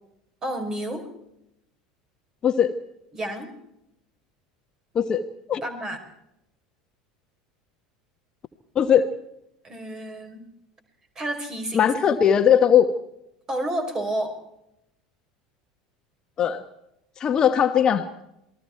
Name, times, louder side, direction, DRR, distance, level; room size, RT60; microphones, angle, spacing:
voice 1, 0.4-1.1 3.1-3.5 5.6-6.0 9.6-10.5 11.1-12.2 13.5-14.4, right 1 dB, 25° right, 7 dB, 5.0 m, -30 dB
voice 2, 8.7-9.1 11.7-12.9 16.4-16.6 17.2-18.2, left 8 dB, 35° left, 8 dB, 1.4 m, -19 dB
28.0 x 20.5 x 4.6 m, 0.84 s
figure-of-eight pair, 70°, 2 cm